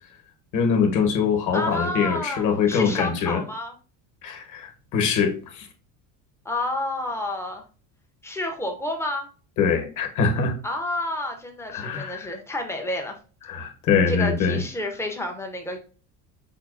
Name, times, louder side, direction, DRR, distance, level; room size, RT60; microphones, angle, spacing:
voice 1, 0.5-3.4 4.2-5.7 9.6-10.6 11.7-12.3 13.5-14.6, left 6 dB, 50° left, 1.0 m, -23 dB
voice 2, 1.5-3.7 6.5-7.6 8.2-9.3 10.6-13.2 14.1-15.8, left 1 dB, 5° left, 0.4 m, -30 dB
5.4 x 2.3 x 2.3 m
cardioid pair, 160°, 40 cm